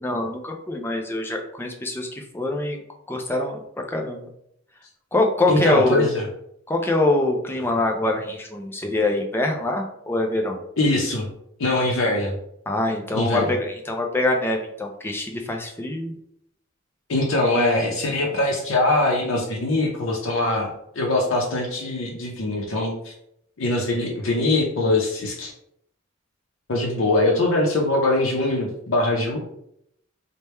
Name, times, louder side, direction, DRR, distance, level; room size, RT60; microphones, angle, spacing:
voice 1, 0.0-2.8 3.1-3.6 3.9-4.3 5.1-6.1 6.7-10.6 12.7-16.2, left 2 dB, 10° left, 2 dB, 0.4 m, -24 dB
voice 2, 5.5-6.2 10.8-11.3 11.6-12.3 13.1-13.5 17.1-23.1 23.6-25.5 26.7-29.4, left 2 dB, 75° left, -1 dB, 0.6 m, -22 dB
3.3 x 2.2 x 4.2 m, 0.75 s
head